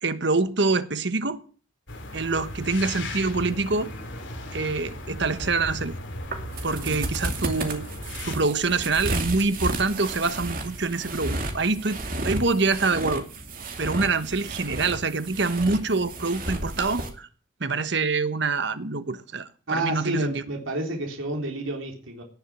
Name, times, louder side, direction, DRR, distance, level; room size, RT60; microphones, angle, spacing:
voice 1, 0.0-1.4 2.1-3.9 4.5-6.0 6.6-7.9 8.2-12.0 12.2-13.2 13.8-17.3 17.6-20.4, right 3 dB, 60° right, 1.2 m, -25 dB
sound 1, 1.9-8.3, left 1 dB, 65° left, 3.1 m, -36 dB
sound 2, 6.2-17.1, right 2 dB, 45° right, 2.5 m, -32 dB
voice 2, 19.7-22.2, right 1 dB, 80° right, 3.6 m, -30 dB
18.5 x 7.2 x 7.3 m
head